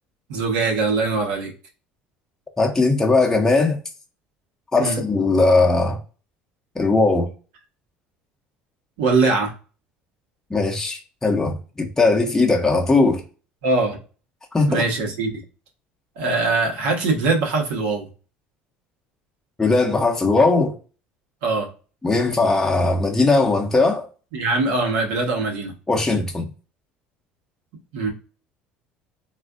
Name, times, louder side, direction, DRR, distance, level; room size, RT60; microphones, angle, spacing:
voice 1, 0.3-1.5 4.8-5.0 9.0-9.5 13.6-14.0 14.7-15.4 16.2-18.1 21.4-21.7 24.3-25.7 27.9-28.1, right 3 dB, 85° right, 1.0 m, -22 dB
voice 2, 2.6-3.8 4.7-6.0 6.8-7.3 10.5-13.2 14.5-14.8 19.6-20.7 22.0-24.1 25.9-26.5, left 3 dB, 10° left, 0.6 m, -19 dB
3.4 x 2.4 x 2.3 m
supercardioid pair, 110°, 4 cm